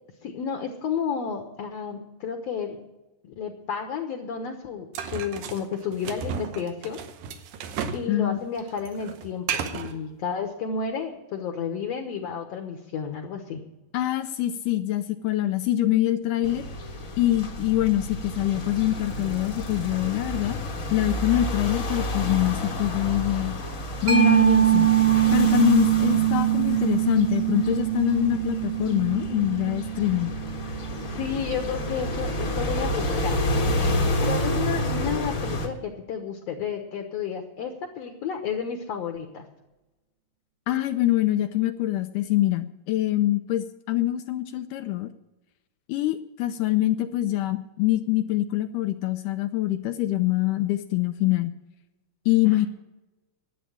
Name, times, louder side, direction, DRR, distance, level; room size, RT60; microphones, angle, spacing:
voice 1, 0.2-2.8 3.2-7.0 7.9-13.6 31.1-39.5 52.4-52.7, left 6 dB, 60° left, 4 dB, 1.9 m, -32 dB
sound 1, 4.9-8.1 8.4-9.9, right 7 dB, 80° right, 2.7 m, -33 dB
voice 2, 8.1-8.4 13.9-16.6 17.2-20.6 20.9-23.5 24.0-24.9 25.3-30.4 40.7-45.1 45.9-51.5 52.3-52.7, left 15 dB, 80° left, 9 dB, 2.0 m, -24 dB
sound 2, 16.4-35.7, left 1 dB, 40° left, 1.1 m, -30 dB
Mallet percussion, 24.1-31.3, right 14 dB, 65° right, 2.9 m, -23 dB
11.0 x 8.5 x 9.9 m, 1.0 s
omnidirectional pair, 3.9 m